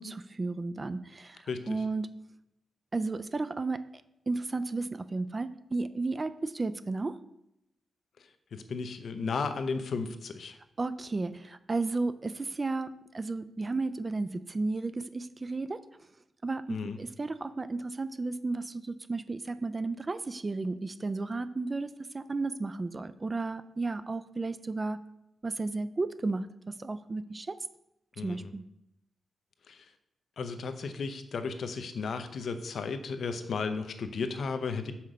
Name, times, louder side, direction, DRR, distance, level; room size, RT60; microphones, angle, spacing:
voice 1, 0.0-2.1 2.9-3.9 4.3-7.2 10.8-15.8 16.4-25.0 25.4-27.6 28.2-28.6, right 3 dB, 25° right, 13 dB, 0.3 m, -33 dB
voice 2, 8.5-10.6 16.7-17.0 28.2-28.5 29.7-29.8 30.4-34.9, left 4 dB, 60° left, 8 dB, 0.7 m, -34 dB
5.7 x 4.8 x 6.5 m, 0.83 s
wide cardioid pair, 140°, 0 cm